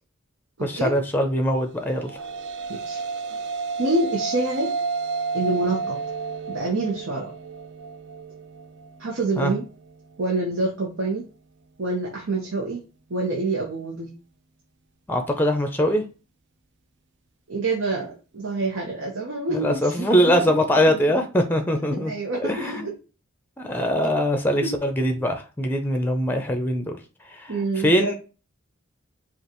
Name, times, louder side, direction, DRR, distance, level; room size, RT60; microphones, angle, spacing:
voice 1, 0.6-2.1 9.4-9.5 15.1-16.0 19.5-22.1 22.4-22.9 23.6-27.0 27.4-28.2, equal, 10° left, 5 dB, 0.5 m, -22 dB
sound 1, 1.8-10.3, right 4 dB, 60° right, 0.5 m, -32 dB
voice 2, 2.7-3.0 3.8-4.7 5.3-6.0 6.5-7.3 9.0-9.6 10.2-11.3 11.8-12.8 13.1-14.1 17.5-20.4 20.9-21.0 21.9-22.9 24.6-24.7 27.5-28.1, right 2 dB, 85° right, -2 dB, 1.0 m, -27 dB
5.2 x 2.5 x 3.0 m, 0.33 s
head